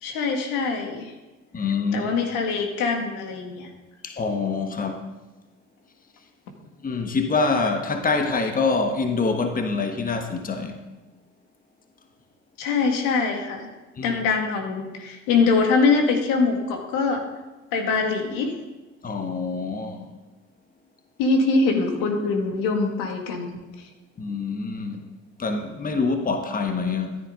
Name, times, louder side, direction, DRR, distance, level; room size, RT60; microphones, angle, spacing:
voice 1, 0.0-1.1 1.6-1.7 1.9-3.7 12.6-13.7 14.0-17.2 17.7-18.5 21.2-23.6, left 4 dB, 75° left, 2.0 m, -23 dB
voice 2, 1.5-2.1 4.0-5.1 6.8-10.8 14.0-14.2 19.0-20.1 24.2-25.0 25.4-27.2, left 4 dB, 25° left, 1.3 m, -25 dB
14.0 x 10.0 x 3.8 m
hypercardioid pair, 65°, 34 cm